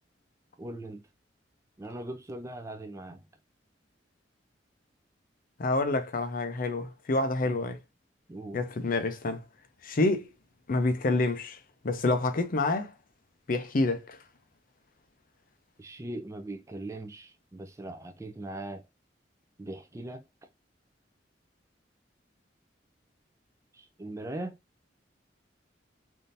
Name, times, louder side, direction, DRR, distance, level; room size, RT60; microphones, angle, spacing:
voice 1, 0.6-1.1 1.8-3.2 7.4-7.7 8.3-8.6 15.8-18.9 19.6-20.2 23.7-24.6, right 1 dB, 15° right, 0.4 m, -40 dB
voice 2, 5.6-7.8 8.5-9.4 9.8-10.3 10.7-11.6 11.8-12.9 13.5-14.2, left 2 dB, 50° left, 0.6 m, -27 dB
3.5 x 2.6 x 2.6 m
head